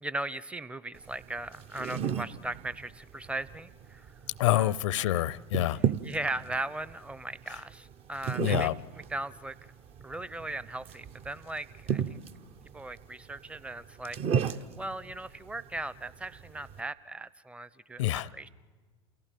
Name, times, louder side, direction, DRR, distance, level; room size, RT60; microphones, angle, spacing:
voice 1, 0.0-4.1 4.5-4.7 6.0-8.7 9.1-9.5 10.0-12.2 12.7-14.2 14.4-18.5, right 2 dB, 5° right, 18 dB, 0.7 m, -38 dB
sound 1, 0.9-16.8, right 8 dB, 40° right, 1.0 m, -36 dB
voice 2, 4.4-5.8 7.5-7.6 8.4-8.8 18.0-18.3, left 14 dB, 75° left, 23 dB, 0.6 m, -27 dB
28.5 x 16.5 x 9.2 m, 1.5 s
hypercardioid pair, 90°, 16 cm